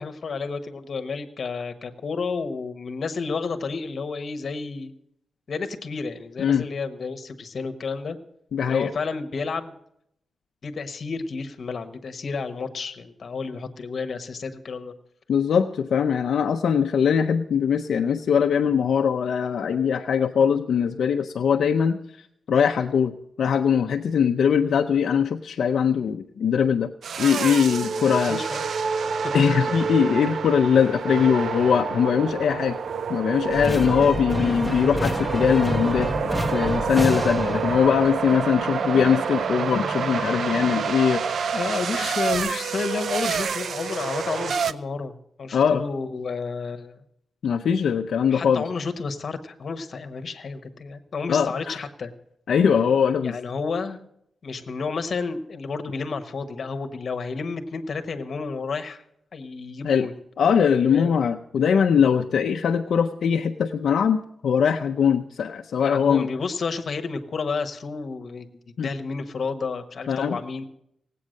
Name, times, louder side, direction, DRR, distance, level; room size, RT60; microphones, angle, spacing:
voice 1, 0.0-4.9 5.5-8.2 8.7-9.8 10.6-14.9 27.9-28.9 41.5-47.0 48.2-52.1 53.2-54.0 54.4-59.0 59.3-60.1 60.9-61.2 65.8-68.5 68.8-70.6, left 4 dB, 50° left, 7 dB, 1.1 m, -31 dB
voice 2, 8.5-8.9 15.3-22.0 22.5-26.9 27.2-28.4 29.3-32.8 33.1-41.5 45.5-45.8 47.4-48.6 51.3-51.8 52.5-53.4 59.8-60.1 60.4-66.3 68.8-68.9 70.1-70.4, left 7 dB, 70° left, 4 dB, 0.6 m, -21 dB
sound 1, 27.0-44.7, right 6 dB, 65° right, 0.4 m, -28 dB
sound 2, 33.5-40.9, left 1 dB, 5° right, 1.3 m, -30 dB
17.5 x 8.4 x 6.4 m, 0.74 s
wide cardioid pair, 145°, 0 cm